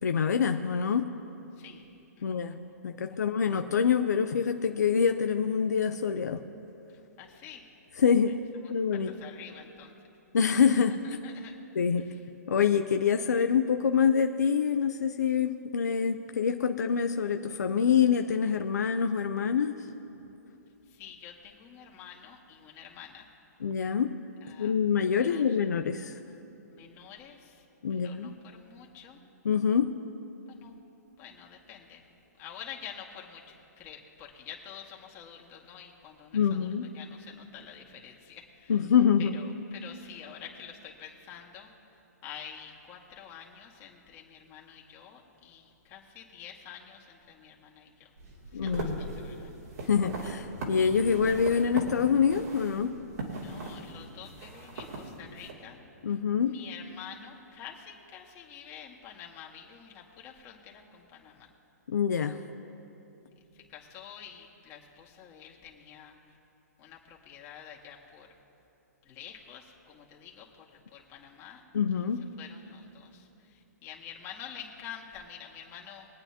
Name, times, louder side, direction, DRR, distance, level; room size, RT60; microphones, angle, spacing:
voice 1, 0.0-1.1 2.2-6.4 8.0-8.4 8.7-9.1 10.3-11.0 11.7-12.1 12.5-19.9 23.6-24.1 24.6-26.2 27.8-28.3 29.4-30.0 36.3-36.9 38.7-39.3 48.5-49.0 49.9-53.0 56.0-56.6 61.9-62.4 71.7-72.3, left 7 dB, 75° left, 7 dB, 0.6 m, -26 dB
voice 2, 1.6-1.9 2.2-2.5 3.1-3.2 7.2-7.6 9.1-9.9 11.0-11.6 12.0-12.2 20.9-23.3 24.4-24.8 25.1-25.6 26.7-27.6 27.9-29.2 30.5-30.8 31.2-38.8 39.2-41.7 42.2-48.1 48.5-49.5 53.3-55.8 56.4-61.5 63.7-66.1 66.8-68.3 69.0-71.6 72.4-76.1, left 8 dB, 30° left, -1 dB, 2.0 m, -48 dB
sound 1, 48.2-55.5, right 2 dB, 65° right, 2.9 m, -40 dB
23.5 x 8.9 x 2.9 m, 2.9 s
hypercardioid pair, 130°, 9 cm